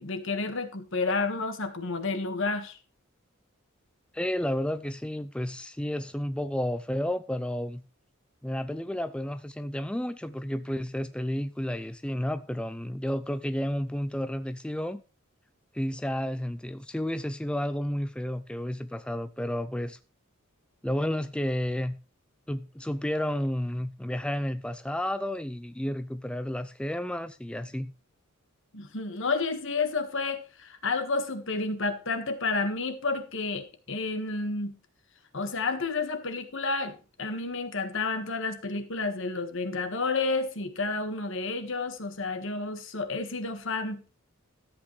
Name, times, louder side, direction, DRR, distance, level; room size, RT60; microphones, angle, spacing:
voice 1, 0.0-2.8 28.7-34.8 35.3-44.0, left 3 dB, 65° left, 1.5 m, -30 dB
voice 2, 4.1-7.8 8.4-15.0 15.7-20.0 20.8-22.0 22.5-27.9, left 1 dB, 5° left, 0.4 m, -31 dB
13.5 x 8.5 x 3.2 m
head